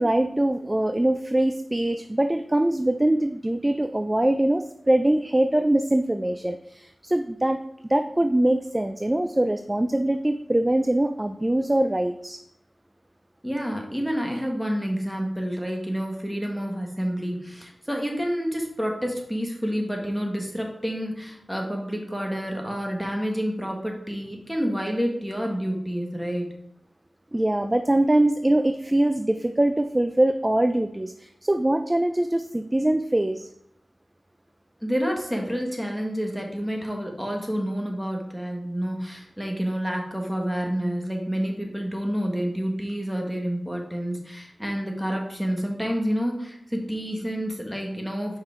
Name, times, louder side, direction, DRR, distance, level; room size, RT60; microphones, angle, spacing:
voice 1, 0.0-7.6 7.9-12.4 27.3-33.5, right 1 dB, 20° right, 8 dB, 0.3 m, -23 dB
voice 2, 13.4-26.5 34.8-48.4, equal, ahead, 1 dB, 1.4 m, -29 dB
5.5 x 4.9 x 4.4 m, 0.77 s
wide cardioid pair, 70°, 0 cm